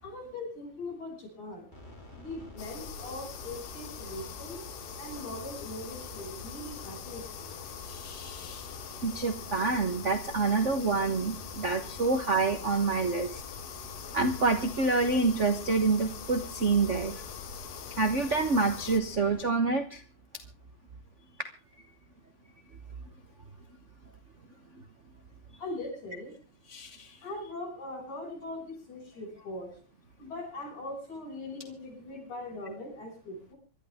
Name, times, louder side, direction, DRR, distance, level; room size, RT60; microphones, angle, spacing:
voice 1, 0.0-1.7 2.1-4.6 5.0-7.5 11.8-12.0 25.6-26.4 27.2-29.7 30.2-33.6, left 2 dB, 90° left, 2 dB, 7.6 m, -41 dB
sound 1, 1.7-19.4, left 2 dB, 15° left, 3.5 m, -48 dB
sound 2, 2.6-19.0, left 7 dB, 65° left, 2.4 m, -43 dB
voice 2, 7.8-8.7 9.0-13.4 14.1-17.2 18.0-20.0 26.7-27.2, right 3 dB, 75° right, 7 dB, 0.6 m, -27 dB
25.5 x 12.0 x 3.6 m, 0.35 s
omnidirectional pair, 3.3 m